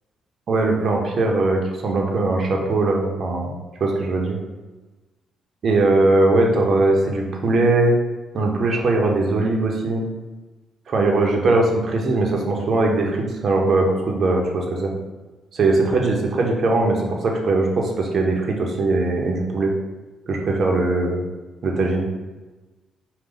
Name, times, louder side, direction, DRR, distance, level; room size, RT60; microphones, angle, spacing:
voice 1, 0.5-3.5 3.8-4.4 5.6-7.9 8.3-10.0 10.9-14.9 15.5-19.7 20.3-21.2 21.6-22.1, right 2 dB, 50° right, 0 dB, 0.9 m, -20 dB
5.0 x 2.4 x 3.9 m, 1.2 s
cardioid pair, 90°, 0 cm